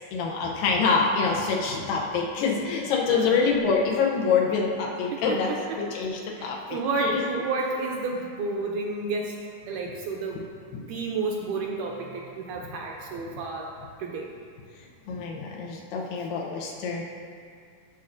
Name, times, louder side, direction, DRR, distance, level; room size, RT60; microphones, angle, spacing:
voice 1, 0.1-5.5 5.8-7.2 10.7-10.8 13.3-13.4 15.1-17.0, left 5 dB, 85° left, -1 dB, 2.5 m, -26 dB
voice 2, 3.1-3.4 4.4-5.8 6.4-9.4 9.7-10.5 10.8-13.7 14.0-14.3, right 3 dB, 80° right, 0 dB, 1.9 m, -31 dB
16.5 x 5.8 x 2.5 m, 2.3 s
omnidirectional pair, 3.9 m